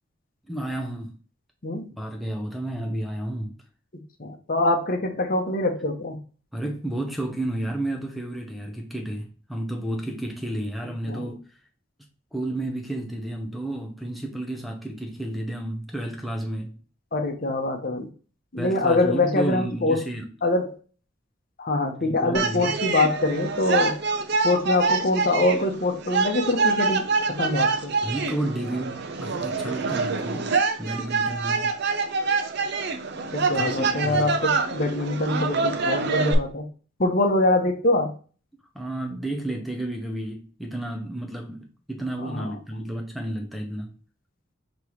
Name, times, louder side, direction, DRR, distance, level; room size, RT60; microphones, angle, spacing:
voice 1, 0.5-1.2 2.0-3.6 6.5-11.4 12.3-16.8 18.6-20.3 22.0-22.7 28.0-31.7 33.5-34.3 38.7-43.9, right 1 dB, ahead, 0.5 m, -31 dB
voice 2, 4.2-6.2 11.1-11.3 17.1-18.1 18.5-20.0 20.4-20.8 21.6-24.0 24.4-27.9 33.3-36.7 37.0-38.1 42.2-42.5, left 2 dB, 45° left, 0.8 m, -24 dB
sound 1, 22.3-36.3, right 4 dB, 55° right, 0.6 m, -26 dB
5.2 x 3.0 x 3.0 m
head